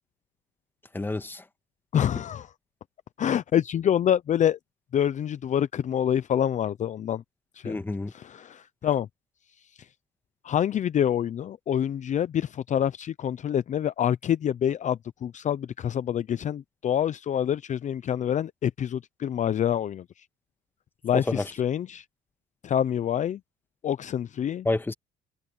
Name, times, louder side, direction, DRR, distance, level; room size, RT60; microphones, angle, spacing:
voice 1, 0.9-1.4 7.6-8.1 21.1-21.5 24.6-24.9, left 2 dB, 10° left, 1.5 m, -29 dB
voice 2, 1.9-2.5 3.2-4.6 4.9-7.2 7.5-7.8 8.1-9.1 9.7-9.9 10.4-20.1 21.0-22.0 22.6-23.4 23.8-24.7, left 9 dB, 45° left, 0.6 m, -26 dB
cardioid pair, 115°, 18 cm